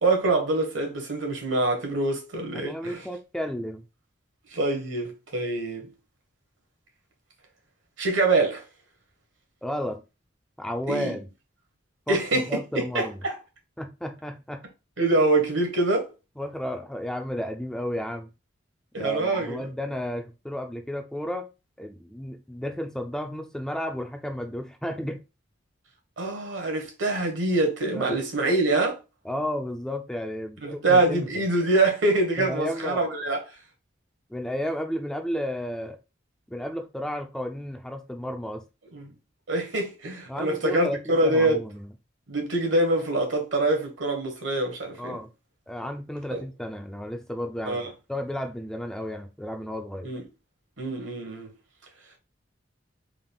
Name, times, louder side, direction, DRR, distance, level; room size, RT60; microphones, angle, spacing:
voice 1, 0.0-3.0 4.5-5.9 8.0-8.6 10.9-11.1 12.1-12.5 12.7-13.3 15.0-16.1 18.9-19.7 26.2-29.0 30.6-33.4 38.9-39.1 39.5-41.6 42.3-45.2 46.3-46.4 47.7-47.9 50.0-50.2 50.8-51.5, right 2 dB, 75° right, 1.3 m, -25 dB
voice 2, 2.5-3.8 9.6-10.0 10.6-11.3 12.1-13.2 13.8-14.6 16.4-18.3 19.0-21.5 21.8-25.2 27.9-28.2 29.2-31.4 32.4-33.0 34.3-36.0 36.5-38.6 40.3-41.9 45.0-45.3 45.7-50.1, equal, 5° left, 0.3 m, -33 dB
3.8 x 2.4 x 3.4 m
head